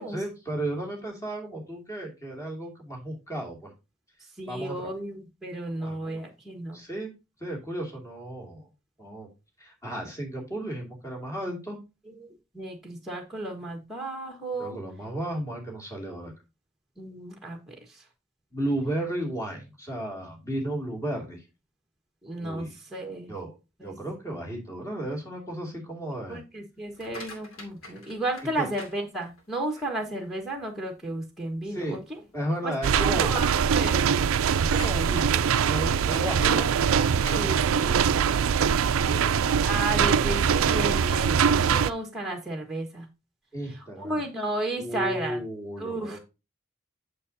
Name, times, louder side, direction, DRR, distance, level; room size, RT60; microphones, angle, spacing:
voice 1, 0.0-3.7 4.5-4.9 5.8-6.2 6.7-7.1 7.4-8.7 9.0-9.3 9.6-11.8 14.6-16.3 18.5-21.4 22.4-22.8 23.3-23.5 23.8-26.4 28.6-28.7 31.7-32.0 32.3-33.4 34.6-36.7 39.1-40.1 43.5-44.2 44.8-46.2, right 1 dB, 15° left, 0 dB, 2.4 m, -34 dB
voice 2, 4.4-6.8 12.2-14.8 17.0-17.8 22.2-23.3 23.8-23.9 26.3-32.0 32.6-33.5 33.8-34.0 37.4-38.0 39.6-43.1 44.0-45.4 45.8-46.2, right 2 dB, ahead, 2 dB, 1.3 m, -33 dB
sound 1, 26.8-29.6 30.1-30.6 31.1-31.2 31.6-31.7 32.4-32.7 33.0-38.9, left 1 dB, 85° left, 2.5 m, -43 dB
sound 2, 32.8-41.9, right 7 dB, 80° right, 0.4 m, -23 dB
8.5 x 6.8 x 2.7 m, 0.27 s
head